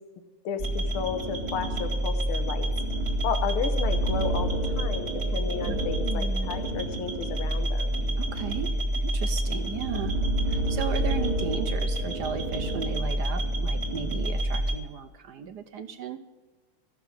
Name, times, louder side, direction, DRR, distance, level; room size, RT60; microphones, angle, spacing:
voice 1, 0.4-2.7 3.2-8.0, left 6 dB, 80° left, 8 dB, 1.9 m, -33 dB
sound 1, 0.6-14.8, right 1 dB, 30° right, 2.3 m, -28 dB
voice 2, 5.7-6.6 8.2-10.2 10.5-16.2, right 7 dB, 65° right, 9 dB, 1.0 m, -36 dB
14.5 x 6.9 x 8.5 m, 1.3 s
omnidirectional pair, 2.4 m